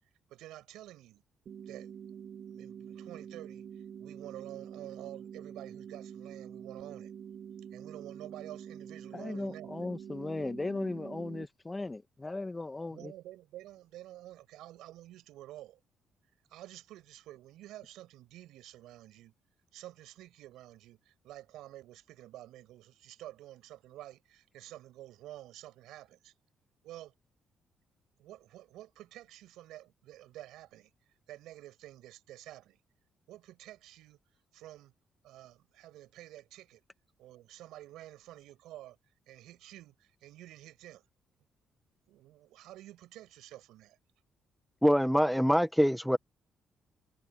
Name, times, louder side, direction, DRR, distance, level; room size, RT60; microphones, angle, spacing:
voice 1, 0.3-1.2 1.7-1.9 2.4-3.7 4.0-7.1 7.7-9.7 12.9-15.8 16.5-19.3 19.7-26.3 26.8-27.1 28.2-30.9 31.3-32.8 33.3-34.2 34.5-34.9 35.2-36.8 37.2-39.0 39.3-41.0 42.1-44.0, right 14 dB, 90° right, 6.0 m, -50 dB
sound 1, 1.5-11.5, right 8 dB, 60° right, 5.8 m, -46 dB
voice 2, 9.1-13.1, left 2 dB, 20° left, 1.7 m, -37 dB
voice 3, 44.8-46.2, equal, ahead, 1.5 m, -24 dB
cardioid pair, 90°, 0 cm